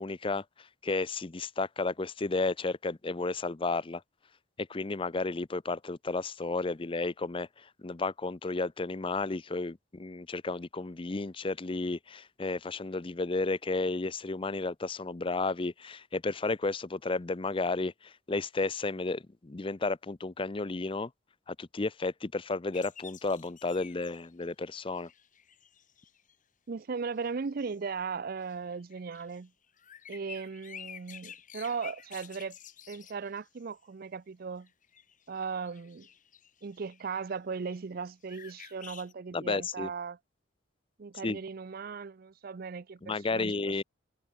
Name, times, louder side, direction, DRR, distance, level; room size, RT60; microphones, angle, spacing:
voice 1, 0.0-4.0 4.6-21.1 21.5-25.1 39.3-39.9 41.2-41.4 43.0-43.8, left 3 dB, 25° left, 0.6 m, -32 dB
sound 1, 22.7-26.3 27.2-27.8 28.4-33.6 34.7-38.0 38.3-39.1, left 8 dB, 40° left, 6.3 m, -51 dB
voice 2, 26.7-29.5 30.1-32.6 32.9-34.7 35.3-36.1 36.6-40.2 41.0-43.8, right 5 dB, 50° right, 0.5 m, -37 dB
head